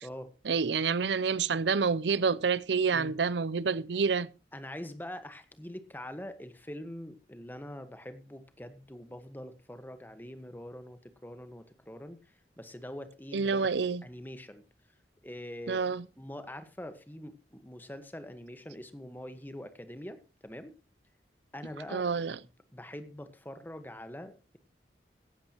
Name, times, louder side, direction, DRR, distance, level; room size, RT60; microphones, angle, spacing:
voice 1, 0.5-4.3 13.3-14.0 15.7-16.0 21.9-22.4, right 5 dB, 80° right, 0.6 m, -28 dB
voice 2, 4.5-13.7 14.0-14.6 15.2-20.8 21.5-22.1 22.7-24.6, left 1 dB, 10° left, 1.4 m, -44 dB
17.0 x 12.5 x 3.0 m
head